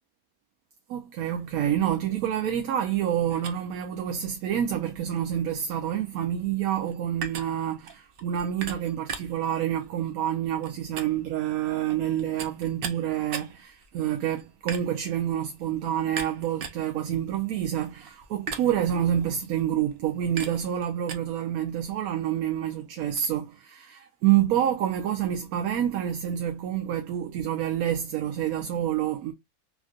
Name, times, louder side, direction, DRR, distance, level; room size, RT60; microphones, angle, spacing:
voice 1, 0.9-29.3, right 10 dB, 85° right, 1.0 m, -28 dB
sound 1, 3.3-21.2, right 6 dB, 60° right, 0.6 m, -41 dB
3.5 x 2.5 x 2.4 m
omnidirectional pair, 1.5 m